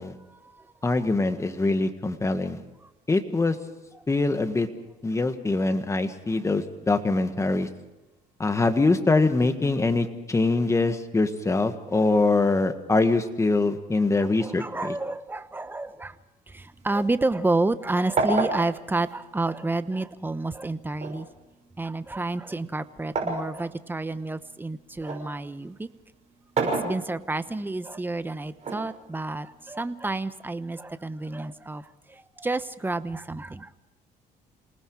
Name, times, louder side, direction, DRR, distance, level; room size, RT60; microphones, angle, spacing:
voice 1, 0.3-0.7 2.8-2.9 14.1-16.2 16.5-21.3 21.8-25.9 26.8-33.7, right 2 dB, 10° right, 12 dB, 1.0 m, -30 dB
voice 2, 0.8-2.6 3.1-3.5 4.1-4.7 5.0-7.7 8.4-14.9, left 3 dB, 15° left, 8 dB, 1.7 m, -23 dB
sound 1, 16.5-17.8 18.2-20.1 21.0-23.5 24.0-25.3 26.3-27.5 28.6-29.6, right 3 dB, 45° right, 6.1 m, -30 dB
28.0 x 19.0 x 4.9 m, 1.0 s
cardioid pair, 110°, 17 cm